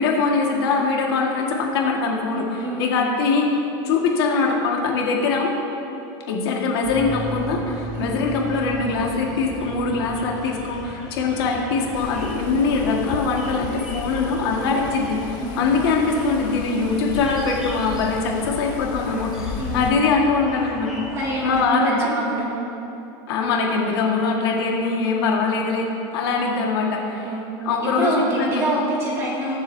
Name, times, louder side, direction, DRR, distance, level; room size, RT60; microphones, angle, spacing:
voice 1, 0.0-3.5 3.8-5.5 6.3-21.0 21.4-22.2 23.3-25.9 26.1-27.3 27.6-28.6, left 4 dB, 75° left, -1 dB, 1.8 m, -22 dB
sound 1, 6.8-21.6, equal, 5° right, 1.6 m, -37 dB
sound 2, 11.9-19.9, left 8 dB, 50° left, 0.7 m, -36 dB
voice 2, 21.1-22.5 27.2-29.5, right 1 dB, 20° right, -5 dB, 2.3 m, -26 dB
21.5 x 7.5 x 2.8 m, 2.9 s
supercardioid pair, 175°, 13 cm